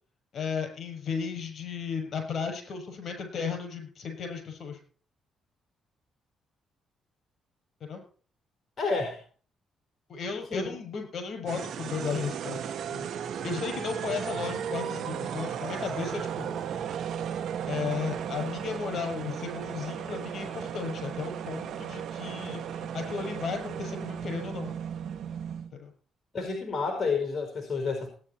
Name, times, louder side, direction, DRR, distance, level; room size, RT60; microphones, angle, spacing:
voice 1, 0.3-4.8 7.8-8.0 10.1-13.1 13.4-16.6 17.7-24.7 25.7-25.9, left 6 dB, 55° left, 5 dB, 7.1 m, -35 dB
voice 2, 8.8-9.2 10.5-10.8 26.3-28.1, left 4 dB, 35° left, 4 dB, 5.0 m, -29 dB
sound 1, 11.5-25.7, right 8 dB, 70° right, 1.3 m, -35 dB
18.5 x 10.0 x 4.4 m, 0.42 s
cardioid pair, 90°, 0 cm